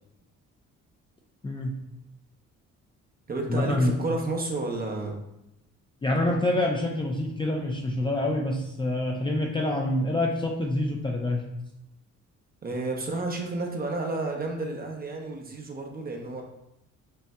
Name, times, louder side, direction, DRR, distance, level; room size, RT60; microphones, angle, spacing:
voice 1, 1.4-1.7 3.5-3.9 6.0-11.4, left 1 dB, 15° left, -1 dB, 0.4 m, -26 dB
voice 2, 3.3-5.2 12.6-16.4, right 2 dB, 30° right, 1 dB, 0.7 m, -31 dB
5.4 x 2.5 x 2.2 m, 0.86 s
cardioid pair, 90°, 30 cm